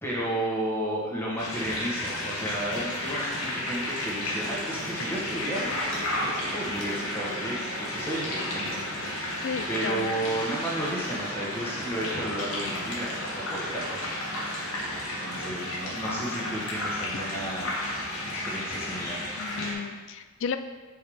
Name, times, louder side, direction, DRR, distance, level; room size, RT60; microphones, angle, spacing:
voice 1, 0.0-5.7 6.5-9.2 9.7-14.0 15.0-17.7 18.3-19.2, right 1 dB, 10° left, -6 dB, 1.3 m, -33 dB
sound 1, 1.4-19.7, left 1 dB, 80° left, 1.7 m, -33 dB
sound 2, 4.3-15.8, right 2 dB, 80° right, 0.8 m, -43 dB
voice 2, 9.4-10.1 19.4-20.6, left 6 dB, 60° left, 10 dB, 0.4 m, -33 dB
5.3 x 4.6 x 4.9 m, 1.3 s
head